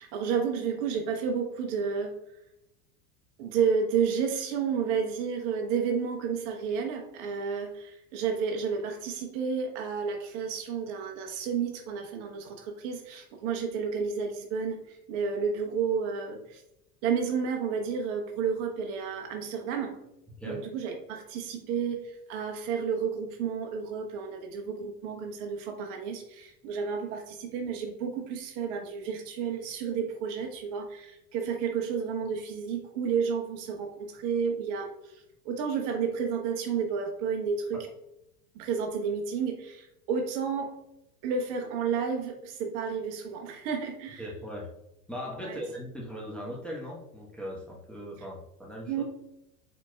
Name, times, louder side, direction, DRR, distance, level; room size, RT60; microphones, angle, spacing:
voice 1, 0.0-2.2 3.4-16.6 17.0-20.0 20.4-37.9 38.5-40.7 41.2-44.3 45.4-45.6 48.9-49.0, right 6 dB, 55° right, 4 dB, 0.9 m, -31 dB
voice 2, 20.4-20.7 37.7-37.8 44.2-44.7 45.1-49.0, equal, ahead, -3 dB, 0.9 m, -39 dB
4.4 x 4.1 x 2.2 m, 0.86 s
hypercardioid pair, 90°, 47 cm